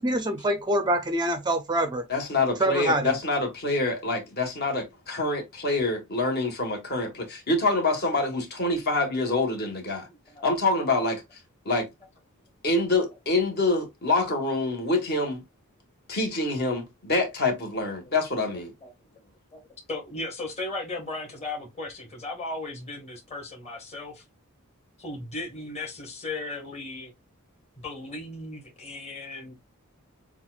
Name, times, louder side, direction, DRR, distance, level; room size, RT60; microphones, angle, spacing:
voice 1, 0.0-2.0 2.6-3.1, right 1 dB, 20° right, 0.5 m, -25 dB
voice 2, 2.1-10.1 10.4-11.2 11.6-11.9 12.6-15.4 16.1-18.7, left 2 dB, 45° left, 1.6 m, -26 dB
voice 3, 10.0-10.4 18.0-18.1 18.5-18.9 19.5-19.6 19.9-24.2 25.0-27.1 27.8-29.5, left 2 dB, 30° left, 1.8 m, -36 dB
7.0 x 2.4 x 2.4 m
head